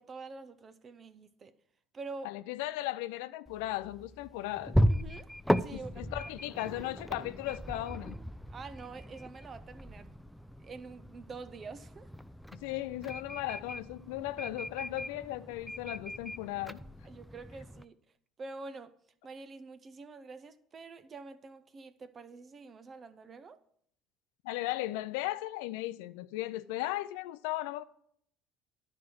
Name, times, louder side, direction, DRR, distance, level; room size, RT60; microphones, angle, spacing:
voice 1, 0.0-1.5 1.9-2.4 4.9-5.3 5.6-6.2 6.5-6.6 8.5-10.1 10.6-12.1 17.0-17.9 18.4-18.9 19.2-23.6, right 4 dB, 35° right, 0.6 m, -46 dB
voice 2, 2.2-4.8 5.7-8.2 12.5-16.8 24.4-27.8, left 16 dB, 80° left, 0.4 m, -36 dB
sound 1, 3.5-17.8, equal, ahead, 0.4 m, -36 dB
10.5 x 4.9 x 6.0 m
supercardioid pair, 80°, 0 cm